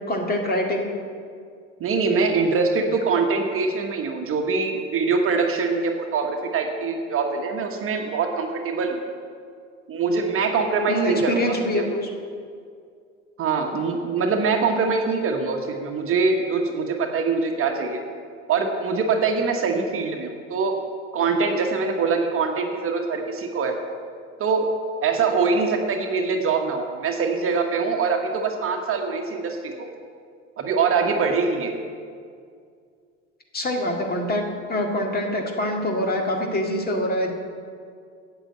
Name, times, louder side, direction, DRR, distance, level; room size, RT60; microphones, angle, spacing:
voice 1, 0.1-0.9 10.9-12.1 33.5-34.4 34.7-37.3, left 1 dB, 25° left, 2 dB, 2.0 m, -24 dB
voice 2, 1.8-9.0 9.9-11.8 13.4-18.0 18.5-20.7 21.1-23.8 24.4-24.7 25.0-29.9 30.6-31.7, right 4 dB, 35° right, 3 dB, 1.3 m, -23 dB
8.9 x 8.2 x 7.5 m, 2.2 s
hypercardioid pair, 75°, 36 cm